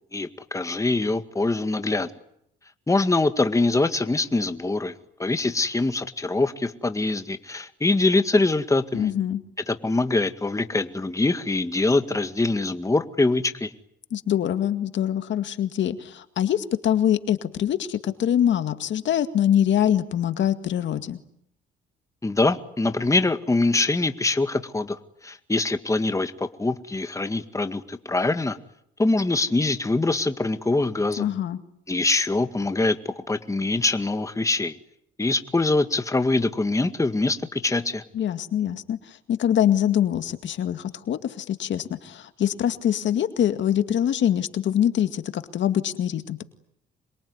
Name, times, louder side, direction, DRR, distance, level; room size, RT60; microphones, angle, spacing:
voice 1, 0.1-2.1 2.9-4.9 5.2-9.1 9.7-13.7 22.2-25.0 25.2-28.6 29.0-31.3 31.9-34.8 35.2-38.0, left 2 dB, 15° left, 9 dB, 1.9 m, -24 dB
voice 2, 8.9-9.4 14.1-21.2 31.2-31.6 38.1-46.4, left 10 dB, 70° left, 10 dB, 2.1 m, -24 dB
27.0 x 22.5 x 9.7 m, 0.72 s
cardioid pair, 90°, 20 cm